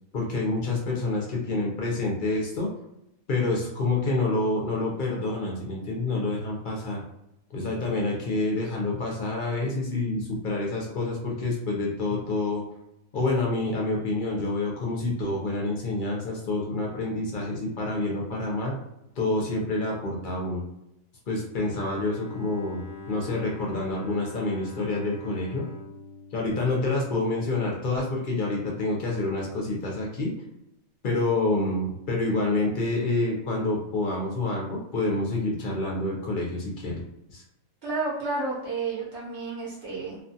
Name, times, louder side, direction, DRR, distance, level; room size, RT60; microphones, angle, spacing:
voice 1, 0.1-2.7 3.3-7.0 7.5-12.6 13.1-18.7 19.2-20.6 21.3-22.8 23.1-25.7 26.3-30.3 31.0-37.0 37.3-37.4, left 2 dB, 55° left, -2 dB, 0.5 m, -27 dB
Bowed string instrument, 21.6-27.5, left 4 dB, 25° left, 0.9 m, -43 dB
voice 2, 37.8-40.2, right 3 dB, 60° right, -5 dB, 0.9 m, -31 dB
2.4 x 2.3 x 2.6 m, 0.82 s
omnidirectional pair, 1.4 m